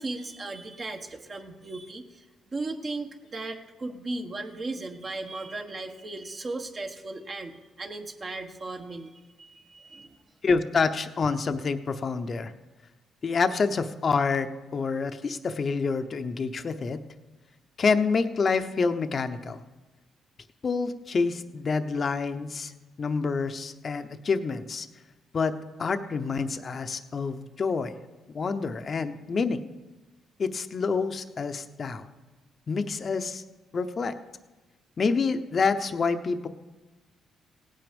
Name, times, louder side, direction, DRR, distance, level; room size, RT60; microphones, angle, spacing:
voice 1, 0.0-10.2, right 2 dB, 40° right, 3 dB, 1.4 m, -37 dB
voice 2, 10.4-12.5 13.2-17.0 17.8-19.6 20.6-22.7 23.0-24.9 25.3-25.5 25.8-27.9 28.3-29.6 30.4-32.1 32.7-33.4 33.7-34.1 35.0-36.5, left 4 dB, 45° left, 9 dB, 0.8 m, -27 dB
17.0 x 9.2 x 5.3 m, 1.2 s
cardioid pair, 90°, 0 cm